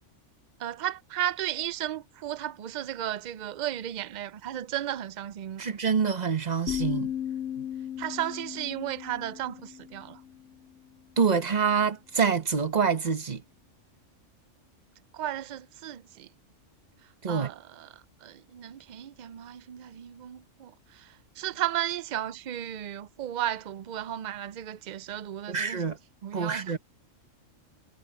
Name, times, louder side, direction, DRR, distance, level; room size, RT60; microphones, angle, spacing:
voice 1, 0.6-5.7 8.0-10.2 15.1-16.3 17.3-17.9 18.2-25.8 26.2-26.7, right 12 dB, 85° right, 0.4 m, -34 dB
voice 2, 5.6-7.1 11.2-13.4 17.2-17.5 25.5-26.0 26.3-26.8, right 6 dB, 35° right, 1.2 m, -26 dB
sound 1, 6.7-10.5, left 10 dB, 80° left, 0.9 m, -35 dB
omnidirectional pair, 1.3 m